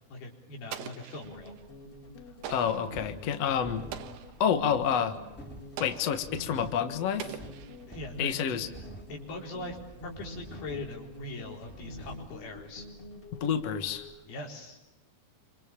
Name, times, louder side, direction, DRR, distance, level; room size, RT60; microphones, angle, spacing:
voice 1, 0.1-1.5 7.9-8.6 9.1-12.9 14.3-14.8, left 2 dB, 75° left, 1 dB, 6.0 m, -41 dB
Explosion, 0.7-1.6 2.4-3.0 3.9-4.5 5.8-6.3 7.2-8.1, right 9 dB, 80° right, 3.3 m, -42 dB
sound 1, 1.2-14.1, left 1 dB, 35° left, 5.4 m, -47 dB
sound 2, 2.4-12.4, right 1 dB, 5° left, 3.1 m, -49 dB
voice 2, 2.5-3.9 4.4-5.2 5.8-7.4 8.2-8.7 13.3-14.1, left 8 dB, 55° left, 7 dB, 2.1 m, -28 dB
28.0 x 26.0 x 7.1 m, 0.95 s
omnidirectional pair, 4.5 m